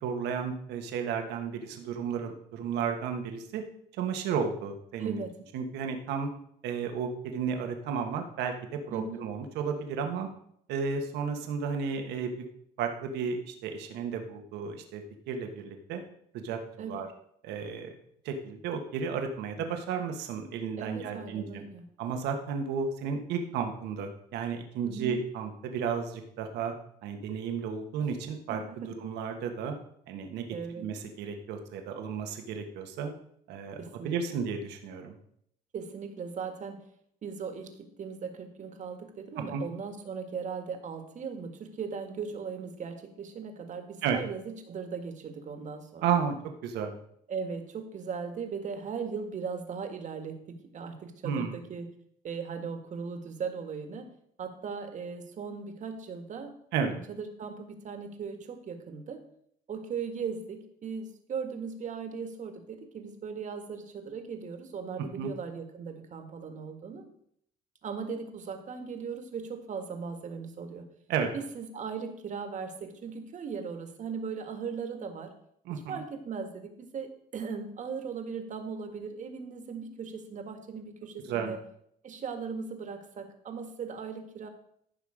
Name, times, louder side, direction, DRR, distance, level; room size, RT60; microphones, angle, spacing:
voice 1, 0.0-3.6 4.0-5.2 5.5-6.3 6.6-10.3 10.7-12.3 12.8-16.0 16.3-17.1 17.4-18.0 18.2-21.6 22.0-26.7 27.0-28.6 29.0-29.7 30.1-30.5 30.8-33.1 33.5-33.8 34.0-35.2 39.5-39.6 44.0-44.2 46.0-46.3 46.6-47.0 51.2-51.6 56.7-56.9 65.1-65.3 71.1-71.3 75.7-76.0 81.3-81.6, right 6 dB, 85° right, 5 dB, 1.7 m, -33 dB
voice 2, 5.0-5.3 8.9-9.2 16.8-17.0 20.8-21.8 24.8-25.2 28.0-28.1 28.5-28.9 30.5-30.9 33.8-34.4 35.7-36.8 37.2-37.7 38.0-46.1 47.3-51.9 52.2-54.1 54.4-56.5 56.9-59.2 59.7-67.1 67.8-70.8 71.3-75.3 75.7-81.6 82.0-84.5, right 5 dB, 45° right, 6 dB, 1.8 m, -38 dB
14.5 x 5.7 x 5.0 m, 0.70 s
cardioid pair, 110°, 17 cm